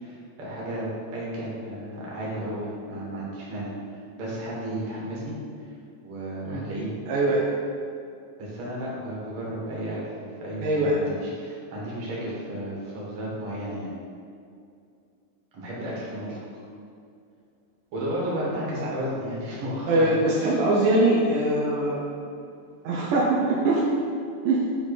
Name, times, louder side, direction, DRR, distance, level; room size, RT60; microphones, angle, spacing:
voice 1, 0.0-3.7 4.2-5.4 6.0-7.0 8.4-13.9 15.5-16.4 17.9-20.6, right 1 dB, 45° right, -6 dB, 1.9 m, -33 dB
voice 2, 7.1-7.4 10.6-11.0 19.9-22.0 22.8-23.8 24.5-24.6, right 2 dB, 85° right, -4 dB, 1.8 m, -22 dB
8.6 x 3.8 x 5.0 m, 2.4 s
omnidirectional pair, 4.8 m